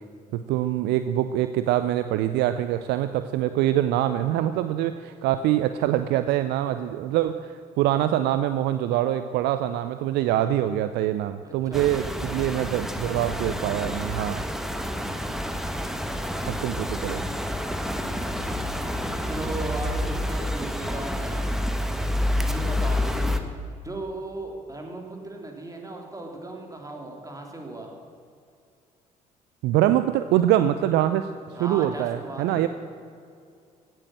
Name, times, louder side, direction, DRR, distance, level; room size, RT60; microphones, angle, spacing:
voice 1, 0.3-14.4 16.5-17.2 29.6-31.3 31.6-32.7, right 12 dB, 60° right, 11 dB, 0.6 m, -24 dB
voice 2, 11.4-12.5 19.3-21.5 22.4-23.4 23.8-27.9 31.6-32.7, right 2 dB, 15° right, 1 dB, 3.3 m, -37 dB
sound 1, 11.7-23.4, left 1 dB, ahead, 1.3 m, -28 dB
16.5 x 9.2 x 7.7 m, 2.4 s
figure-of-eight pair, 50°, 20 cm